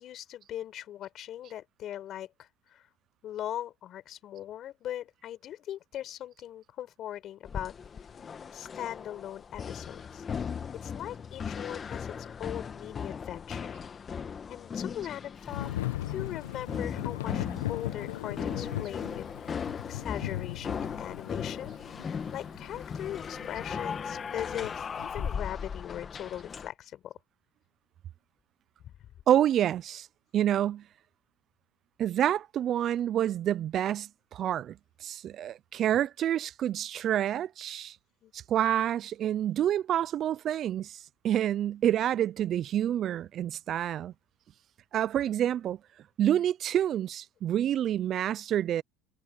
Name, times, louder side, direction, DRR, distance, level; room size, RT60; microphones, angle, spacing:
voice 1, 0.0-2.8 3.2-7.7 8.5-10.2 10.8-13.9 14.5-15.7 16.0-21.8 22.0-27.2 38.2-38.3, left 11 dB, 50° left, 5.1 m, -40 dB
sound 1, 7.4-26.7, left 6 dB, 30° left, 1.7 m, -38 dB
Thunder / Rain, 15.5-25.3, left 15 dB, 85° left, 1.1 m, -38 dB
voice 2, 29.3-30.1 30.3-30.8 32.0-38.0 38.3-41.0 41.2-44.1 44.9-45.8 46.2-48.8, right 11 dB, 45° right, 0.5 m, -28 dB
supercardioid pair, 95°, 0 cm